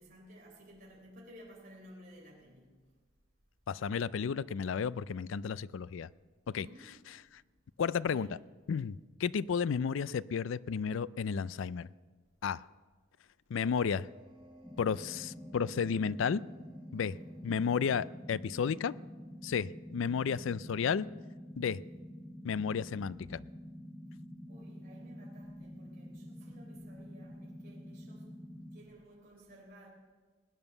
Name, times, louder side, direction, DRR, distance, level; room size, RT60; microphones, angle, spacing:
voice 1, 0.0-2.8 6.5-6.9 8.0-8.4 16.9-17.3 24.5-29.9, equal, 45° right, 3.7 m, -55 dB
voice 2, 3.7-6.1 6.5-6.7 7.8-8.3 8.7-11.9 12.4-12.6 13.5-14.1 14.8-16.4 16.9-17.1 17.4-18.9 19.4-21.1 21.6-21.8 22.4-23.4, left 6 dB, 65° left, 0.4 m, -32 dB
sound 1, 13.6-20.1, equal, 25° right, 5.4 m, -58 dB
sound 2, 14.6-28.8, equal, 10° left, 1.1 m, -48 dB
19.0 x 9.1 x 6.9 m
head